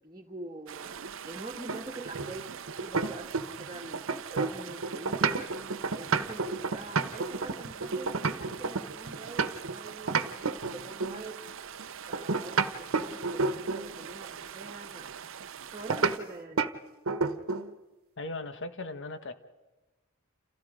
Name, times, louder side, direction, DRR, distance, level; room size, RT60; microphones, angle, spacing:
voice 1, 0.0-5.4 5.9-11.4 12.1-15.1 15.7-16.7, right 2 dB, 20° right, -4 dB, 1.8 m, -44 dB
sound 1, 0.7-16.2, right 8 dB, 65° right, 0.7 m, -43 dB
sound 2, 1.7-3.7 3.9-9.8 10.1-11.2 12.1-13.9 15.9-16.2 16.6-16.8 17.1-17.7, right 4 dB, 80° right, 1.2 m, -30 dB
voice 2, 18.2-19.3, left 2 dB, 60° left, 9 dB, 1.6 m, -38 dB
29.5 x 28.5 x 5.2 m, 1.1 s
head